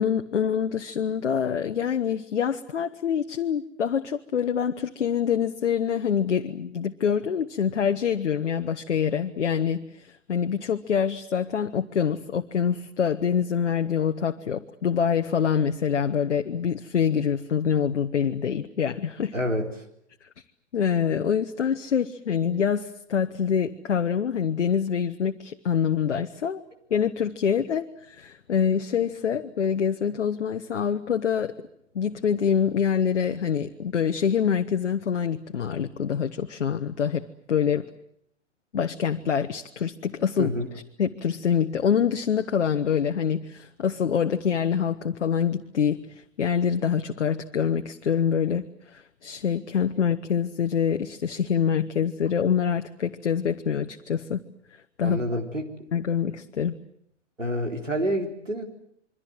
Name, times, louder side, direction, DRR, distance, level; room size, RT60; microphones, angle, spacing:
voice 1, 0.0-19.3 20.2-20.3 20.7-26.6 26.9-31.5 31.9-37.8 38.7-40.6 41.0-54.4 55.0-55.2 55.9-56.7, left 7 dB, 65° left, 6 dB, 1.3 m, -25 dB
voice 2, 19.3-19.7 40.4-40.7 55.0-55.7 57.4-58.6, equal, 90° right, 3 dB, 4.1 m, -27 dB
27.5 x 23.5 x 7.9 m, 0.72 s
figure-of-eight pair, 110°, 37 cm